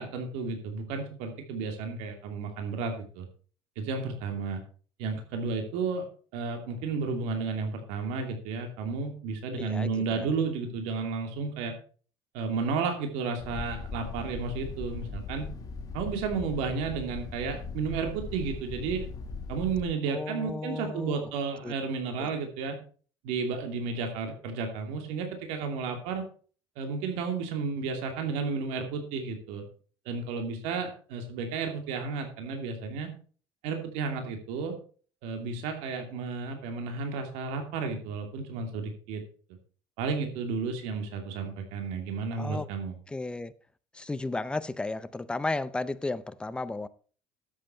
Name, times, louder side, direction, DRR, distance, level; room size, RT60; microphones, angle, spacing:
voice 1, 0.0-3.3 3.8-4.6 5.0-6.0 6.3-11.7 12.3-15.5 15.9-19.1 19.5-22.8 23.2-26.2 26.8-29.6 30.1-33.1 33.6-34.8 35.2-39.2 40.0-43.0, right 5 dB, 85° right, 4 dB, 2.6 m, -32 dB
voice 2, 9.6-10.3 20.1-21.2 21.6-21.7 22.2-22.3 42.4-42.7 43.1-43.5 43.9-46.9, left 2 dB, 10° left, 15 dB, 0.5 m, -34 dB
sound 1, 13.4-19.8, left 4 dB, 30° left, 1.7 m, -39 dB
13.0 x 7.8 x 4.4 m, 0.41 s
cardioid pair, 150°, 11 cm